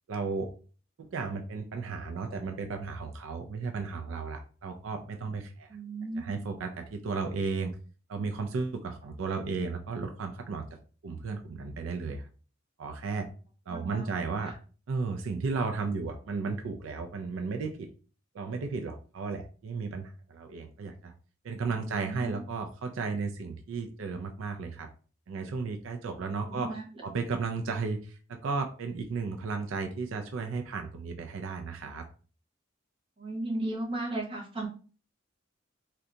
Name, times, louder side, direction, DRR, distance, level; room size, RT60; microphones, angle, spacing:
voice 1, 0.1-0.5 1.0-5.8 6.2-7.8 8.1-10.8 11.0-12.3 12.8-13.3 13.7-14.5 14.9-17.9 18.3-21.1 21.4-24.9 25.3-26.8 27.0-32.1, right 4 dB, 70° right, 5 dB, 0.4 m, -34 dB
voice 2, 5.7-6.3 13.7-14.1 14.4-14.5 21.8-22.4 26.5-26.8 33.2-34.7, right 2 dB, 25° right, 0 dB, 0.8 m, -35 dB
2.6 x 2.2 x 3.7 m, 0.38 s
head